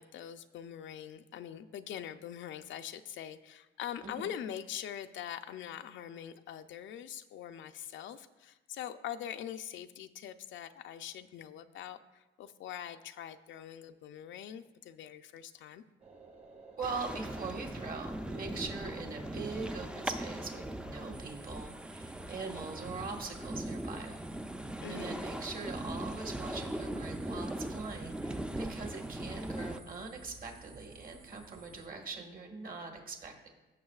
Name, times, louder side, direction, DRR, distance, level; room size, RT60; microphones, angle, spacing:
voice 1, 0.0-15.8 24.8-25.2, left 10 dB, 70° left, 9 dB, 0.5 m, -43 dB
sound 1, 16.0-21.4, right 3 dB, 30° right, 1.1 m, -55 dB
sound 2, 16.8-29.8, right 1 dB, 5° right, 0.4 m, -40 dB
voice 2, 16.8-24.2 24.9-33.5, right 4 dB, 45° right, 3 dB, 1.5 m, -42 dB
sound 3, 21.1-31.9, right 4 dB, 70° right, 1.1 m, -55 dB
15.0 x 6.2 x 2.4 m, 1.1 s
cardioid pair, 90°, 20 cm